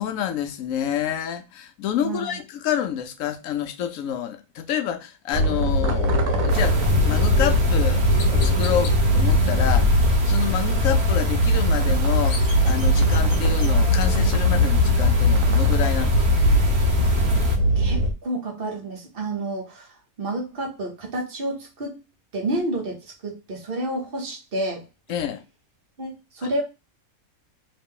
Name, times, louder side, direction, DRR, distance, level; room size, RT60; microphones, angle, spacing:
voice 1, 0.0-6.8 7.0-8.0 8.3-9.9 10.2-16.5 25.1-25.4 26.4-26.5, left 9 dB, 70° left, 0.9 m, -28 dB
voice 2, 2.0-2.4 17.8-19.9 20.2-22.0 22.3-24.8 26.0-26.6, right 1 dB, 40° right, 1.2 m, -30 dB
sound 1, 5.3-18.1, equal, 70° right, 1.1 m, -21 dB
sound 2, 6.5-17.6, left 2 dB, 85° right, 1.4 m, -23 dB
Chirp tweet, 8.2-8.9 11.9-13.7, left 5 dB, 90° left, 1.3 m, -38 dB
3.2 x 2.9 x 3.6 m
omnidirectional pair, 1.5 m